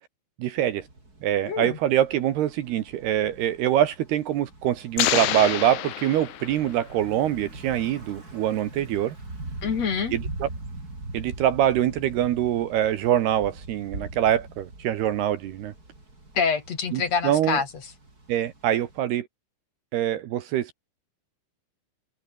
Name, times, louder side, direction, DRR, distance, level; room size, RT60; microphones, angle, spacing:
voice 1, 0.4-0.8 1.2-9.2 10.1-10.5 11.1-15.7 16.9-17.6 18.3-19.3 19.9-20.7, right 11 dB, 70° right, 3.1 m, -24 dB
Thunder / Bicycle, 0.6-19.0, right 2 dB, 20° right, 6.5 m, -42 dB
voice 2, 1.4-1.8 9.6-10.1 16.3-17.7, left 6 dB, 45° left, 3.0 m, -26 dB
sound 1, 5.0-6.9, left 13 dB, 80° left, 4.0 m, -27 dB
omnidirectional pair, 5.3 m